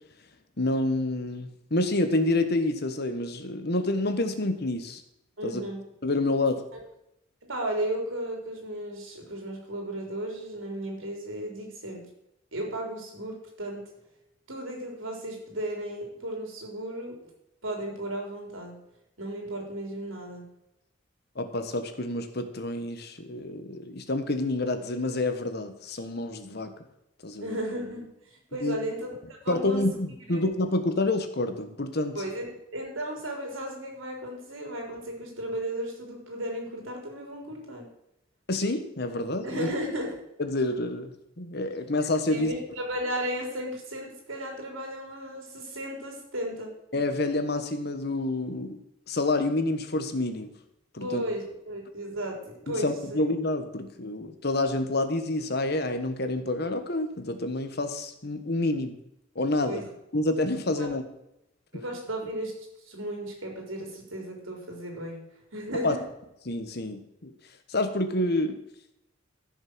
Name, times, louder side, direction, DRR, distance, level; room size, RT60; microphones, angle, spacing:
voice 1, 0.6-5.0 5.4-5.6 6.0-6.6 21.4-26.8 27.2-27.6 28.6-28.8 29.5-32.2 38.5-39.7 40.4-42.5 46.9-48.8 49.1-50.5 50.9-51.2 52.7-58.9 59.3-59.8 60.1-61.0 61.7-61.8 65.8-66.0 66.4-67.3 67.7-68.6, left 2 dB, 55° left, 8 dB, 1.3 m, -28 dB
voice 2, 5.4-5.8 7.5-12.1 12.5-13.8 14.5-17.2 17.6-18.8 19.2-20.5 27.4-29.8 30.3-30.4 32.1-32.5 32.7-37.9 39.4-40.2 42.3-46.7 51.0-53.3 59.6-59.9 60.7-61.0 61.7-65.2 65.5-66.0, right 1 dB, 90° right, 2 dB, 3.8 m, -35 dB
14.5 x 6.5 x 6.2 m, 0.82 s
head